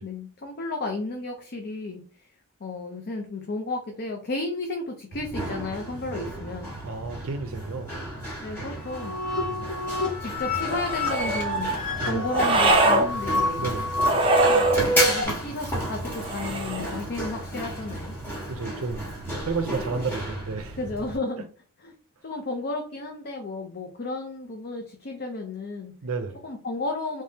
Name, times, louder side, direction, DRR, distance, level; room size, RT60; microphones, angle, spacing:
voice 1, 0.0-2.0 2.6-6.7 8.4-9.1 10.2-13.7 14.4-14.7 15.0-18.2 20.8-21.5 21.8-21.9 22.2-25.9 26.4-27.2, left 2 dB, 45° left, 0.5 m, -33 dB
Run, 5.1-21.2, equal, 10° left, 1.4 m, -33 dB
voice 2, 6.8-8.0 9.4-9.7 12.0-12.3 13.6-14.0 18.5-19.1 19.4-20.8 26.0-26.4, right 4 dB, 65° right, 0.5 m, -32 dB
sound 1, 8.7-15.2, equal, 80° left, 1.5 m, -27 dB
sound 2, 10.6-11.4 12.3-13.1 14.0-14.8 16.2-17.0, right 2 dB, 25° right, 0.6 m, -23 dB
3.3 x 3.2 x 2.8 m
head